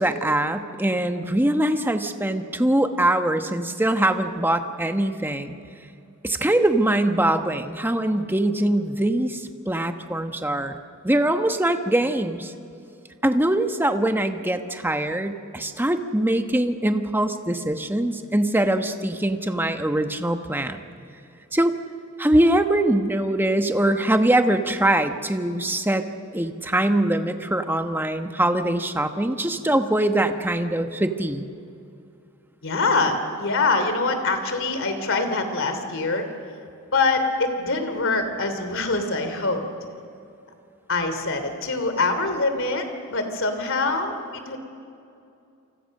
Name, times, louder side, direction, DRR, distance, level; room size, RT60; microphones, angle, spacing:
voice 1, 0.0-5.6 6.2-10.8 11.0-12.5 13.2-20.8 21.5-21.7 22.2-26.1 26.3-31.4, right 1 dB, 10° right, 7 dB, 1.1 m, -22 dB
voice 2, 32.6-36.3 36.9-39.6 40.9-44.6, left 3 dB, 60° left, 8 dB, 3.1 m, -24 dB
29.0 x 25.0 x 6.6 m, 2.6 s
head